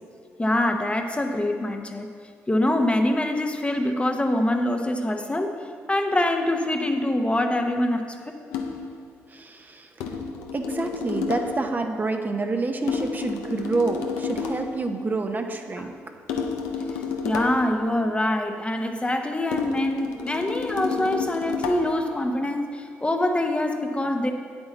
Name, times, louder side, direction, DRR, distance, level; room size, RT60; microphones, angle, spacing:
voice 1, 0.4-2.1 2.5-5.5 5.9-8.4 15.8-15.9 17.2-24.3, left 1 dB, 20° left, 5 dB, 0.8 m, -24 dB
sound 1, 8.5-8.9 10.0-11.7 12.9-14.7 16.3-17.8 19.5-22.1, left 5 dB, 85° left, 0.7 m, -30 dB
voice 2, 9.3-9.9 10.5-15.9, right 3 dB, 30° right, 4 dB, 0.8 m, -28 dB
8.7 x 8.1 x 4.0 m, 2.2 s
supercardioid pair, 60°, 6 cm